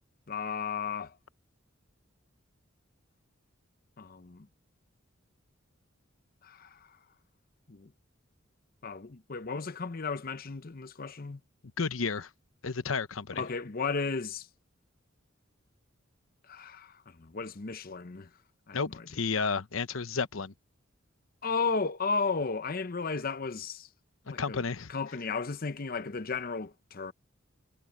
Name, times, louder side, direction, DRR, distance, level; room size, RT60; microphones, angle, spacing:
voice 1, 0.3-1.2 4.0-4.5 6.4-7.0 7.7-7.9 8.8-11.4 13.3-14.5 16.5-18.3 18.7-19.1 21.4-23.9 24.3-24.6 24.9-27.1, left 4 dB, 45° left, 0.8 m, -34 dB
voice 2, 11.8-12.3 12.6-13.4 18.7-20.5 24.4-24.9, left 5 dB, 80° left, 0.9 m, -32 dB
head